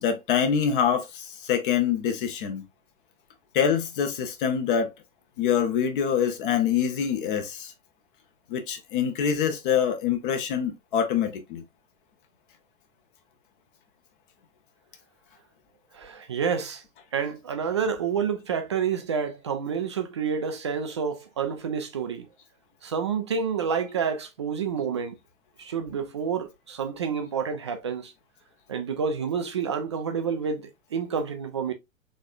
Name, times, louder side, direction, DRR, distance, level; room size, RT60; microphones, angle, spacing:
voice 1, 0.0-2.6 3.5-4.9 5.4-7.7 8.5-11.6, left 8 dB, 40° left, 0.9 m, -25 dB
voice 2, 15.9-16.8 17.1-22.3 22.8-25.2 25.6-28.1 28.7-31.7, right 6 dB, 25° right, 0.3 m, -29 dB
4.2 x 3.4 x 2.4 m
figure-of-eight pair, 105°, 40 cm